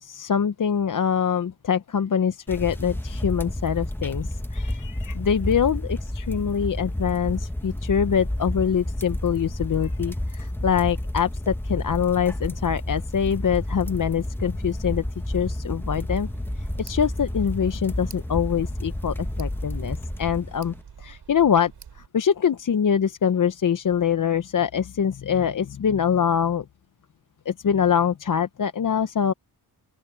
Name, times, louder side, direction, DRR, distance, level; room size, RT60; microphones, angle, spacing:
voice 1, 0.0-16.3 16.6-26.7 27.5-29.3, left 7 dB, 50° left, 0.8 m, -24 dB
sound 1, 2.5-20.8, left 1 dB, 5° left, 1.0 m, -30 dB
Tick, 16.0-22.1, right 7 dB, 75° right, 7.3 m, -46 dB
open air
wide cardioid pair, 95°, 41 cm